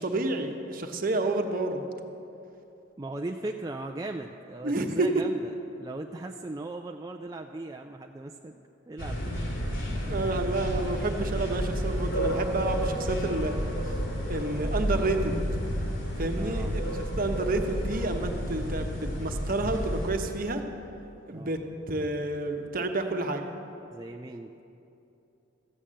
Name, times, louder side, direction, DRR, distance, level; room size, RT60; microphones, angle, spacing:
voice 1, 0.0-1.8 4.6-5.2 10.1-13.6 14.3-15.4 16.2-20.6 21.3-21.6 21.9-23.5, right 2 dB, 45° right, 5 dB, 1.0 m, -29 dB
voice 2, 3.0-8.5 8.9-9.4 16.3-16.7 21.3-21.5 23.9-24.6, right 2 dB, 20° right, 3 dB, 0.4 m, -38 dB
sound 1, 9.0-20.1, equal, 65° left, 2.6 m, -31 dB
14.5 x 8.5 x 7.5 m, 2.8 s
head